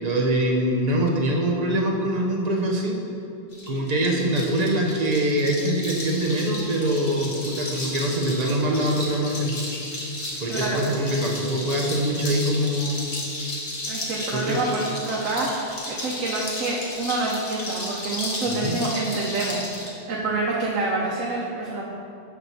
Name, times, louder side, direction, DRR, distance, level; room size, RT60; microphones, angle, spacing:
voice 1, 0.0-3.0 3.7-9.5 10.4-13.1 14.3-14.6 18.5-18.8, right 1 dB, 40° right, -1 dB, 0.6 m, -24 dB
sound 1, 3.5-19.9, left 1 dB, 40° left, 1.1 m, -34 dB
voice 2, 10.5-10.9 13.9-21.8, right 2 dB, 90° right, -3 dB, 1.1 m, -27 dB
7.4 x 5.9 x 2.7 m, 2.6 s
omnidirectional pair, 1.3 m